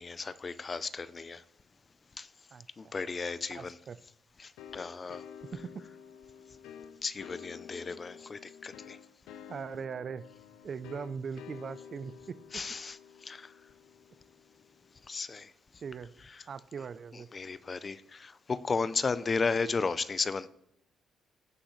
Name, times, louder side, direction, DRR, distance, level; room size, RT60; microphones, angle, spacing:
voice 1, 0.0-1.4 2.2-2.3 2.8-3.7 4.4-5.2 7.0-9.0 12.5-13.0 13.2-13.5 15.1-15.5 17.3-20.5, left 4 dB, 35° left, 0.5 m, -34 dB
voice 2, 3.5-4.0 5.5-5.8 9.5-10.2 10.6-12.4 15.8-16.1 16.5-17.3, right 6 dB, 50° right, 0.5 m, -40 dB
sound 1, 4.6-15.0, left 8 dB, 90° left, 0.7 m, -50 dB
16.0 x 6.2 x 3.2 m
cardioid pair, 90°, 0 cm